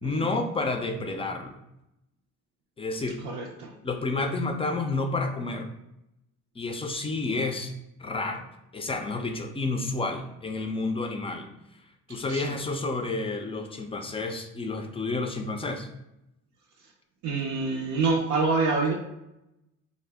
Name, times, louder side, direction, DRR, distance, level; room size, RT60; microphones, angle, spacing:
voice 1, 0.0-1.6 2.8-3.2 3.8-5.7 6.6-7.7 8.0-11.5 12.1-15.9, left 3 dB, 20° left, 5 dB, 0.3 m, -30 dB
voice 2, 3.2-3.7 12.3-12.5 17.2-18.9, right 4 dB, 90° right, -2 dB, 0.5 m, -26 dB
2.6 x 2.1 x 3.3 m, 0.88 s
cardioid pair, 90°, 30 cm